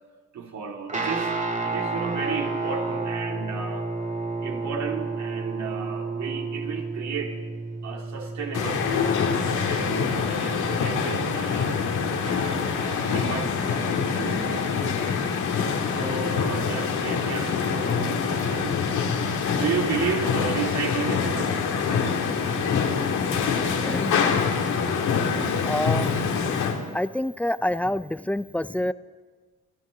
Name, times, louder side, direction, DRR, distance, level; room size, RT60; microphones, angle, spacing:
voice 1, 0.3-1.3 1.6-3.9 4.4-7.4 7.8-9.4 9.7-11.7 12.2-15.2 15.9-18.8 19.5-21.6, right 6 dB, 65° right, 1 dB, 2.8 m, -33 dB
Guitar, 0.9-12.3, right 3 dB, 25° right, 1.7 m, -32 dB
sound 1, 8.5-26.8, left 6 dB, 75° left, 2.1 m, -25 dB
voice 2, 23.6-24.2 25.6-26.3 26.9-28.9, left 1 dB, 5° left, 15 dB, 0.4 m, -27 dB
23.5 x 14.0 x 3.8 m, 1.4 s
cardioid pair, 90°, 30 cm